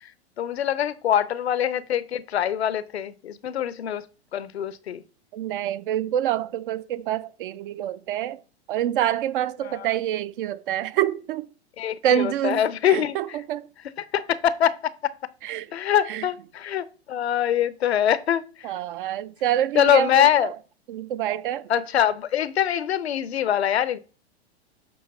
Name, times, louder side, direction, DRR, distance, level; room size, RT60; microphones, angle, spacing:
voice 1, 0.4-4.0 4.3-5.0 9.6-9.9 11.8-13.2 14.1-14.8 15.0-15.1 15.7-18.7 19.7-20.5 21.7-24.0, left 10 dB, 75° left, 0.7 m, -23 dB
voice 2, 5.3-8.4 8.7-11.5 12.0-13.7 15.4-15.7 16.1-16.3 18.6-20.5 20.9-21.7, right 11 dB, 50° right, 0.6 m, -26 dB
7.8 x 3.1 x 5.3 m
figure-of-eight pair, 105°, 33 cm